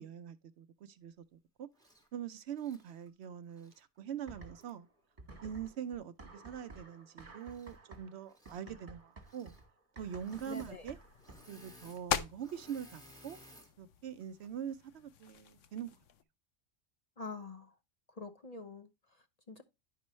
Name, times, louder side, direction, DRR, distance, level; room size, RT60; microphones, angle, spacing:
voice 1, 0.0-1.7 2.1-4.9 5.4-9.5 10.0-11.0 11.5-13.4 13.8-16.0, right 9 dB, 70° right, 0.8 m, -43 dB
Engine / Mechanisms, 1.7-2.1 2.5-3.8 4.6-4.7 7.4-8.0 8.2-8.6 9.2-9.6 10.2-10.8 11.0-13.7 14.2-14.5, equal, 5° left, 1.8 m, -59 dB
sound 1, 4.3-4.9 5.2-11.6, right 2 dB, 30° right, 1.7 m, -54 dB
sound 2, 10.0-16.2, left 8 dB, 85° left, 1.1 m, -43 dB
voice 2, 10.5-10.9 17.2-17.7 18.1-19.6, left 3 dB, 40° left, 0.7 m, -46 dB
10.0 x 5.3 x 3.0 m
omnidirectional pair, 1.2 m